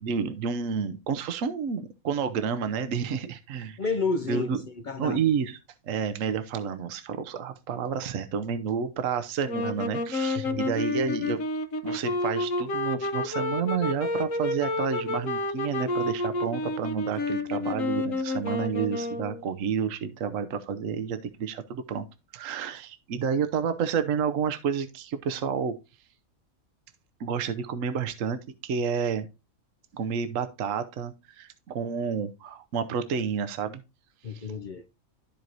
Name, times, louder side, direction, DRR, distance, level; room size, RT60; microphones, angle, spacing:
voice 1, 0.0-3.8 4.3-4.6 5.0-5.6 5.9-11.4 11.8-22.1 22.3-25.7 27.2-29.3 29.9-33.8 34.3-34.5, right 6 dB, 70° right, 1.1 m, -30 dB
voice 2, 3.8-5.2 10.3-10.6 34.2-34.8, left 4 dB, 50° left, 0.6 m, -31 dB
sound 1, 9.5-19.4, left 2 dB, 70° left, 1.5 m, -30 dB
13.5 x 4.5 x 2.6 m
omnidirectional pair, 1.5 m